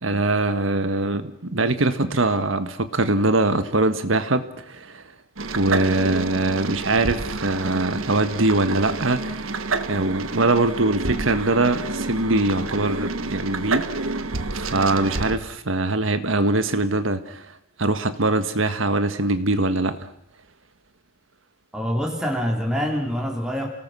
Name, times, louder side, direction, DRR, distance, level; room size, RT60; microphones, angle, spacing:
voice 1, 0.0-5.0 5.5-9.5 9.9-14.1 14.5-17.5 17.8-20.0, right 2 dB, 70° right, 10 dB, 1.6 m, -22 dB
sound 1, 5.4-15.4, right 3 dB, 85° right, 1.4 m, -29 dB
voice 2, 21.7-23.7, equal, 5° right, -1 dB, 2.9 m, -25 dB
29.0 x 18.5 x 6.3 m, 0.69 s
head